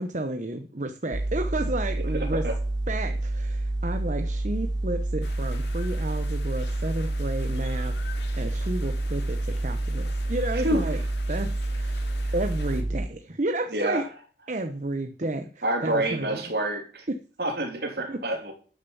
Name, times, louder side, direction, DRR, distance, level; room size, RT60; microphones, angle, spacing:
voice 1, 0.0-2.4 2.9-7.9 8.4-11.0 11.3-12.0 12.3-14.0 14.5-16.4 17.1-17.2 18.1-18.2, right 2 dB, 40° right, 1.0 m, -31 dB
sound 1, 1.1-13.1, right 2 dB, 85° right, 1.0 m, -28 dB
voice 2, 2.1-2.5 10.6-10.8 12.2-12.3 13.7-14.0 15.6-17.1 17.4-18.5, right 1 dB, 60° right, 3.3 m, -28 dB
sound 2, 5.2-12.8, left 4 dB, 70° left, 2.5 m, -46 dB
12.5 x 6.9 x 7.1 m
head